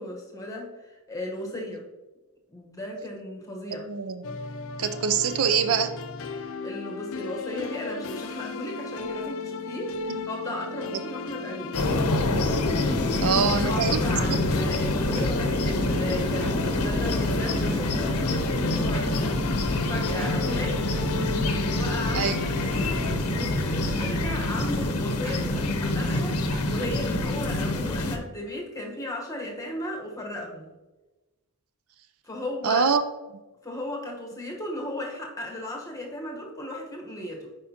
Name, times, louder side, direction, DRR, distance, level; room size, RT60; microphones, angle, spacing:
voice 1, 0.0-1.8 2.5-3.9 6.4-11.8 13.3-20.8 21.6-30.7 32.2-32.8 33.6-37.5, left 1 dB, 15° left, 0 dB, 1.1 m, -35 dB
voice 2, 3.7-4.4 4.8-5.9 10.1-10.3 13.2-14.0 14.3-14.4 22.1-22.4 32.6-33.0, right 6 dB, 65° right, 10 dB, 0.4 m, -24 dB
sound 1, 4.2-23.2, left 4 dB, 65° left, 0.5 m, -35 dB
sound 2, 11.7-28.2, left 2 dB, 90° left, 0.8 m, -26 dB
sound 3, 13.6-21.9 22.4-27.0, equal, 25° right, 1.8 m, -37 dB
8.4 x 5.0 x 2.8 m, 1.1 s
head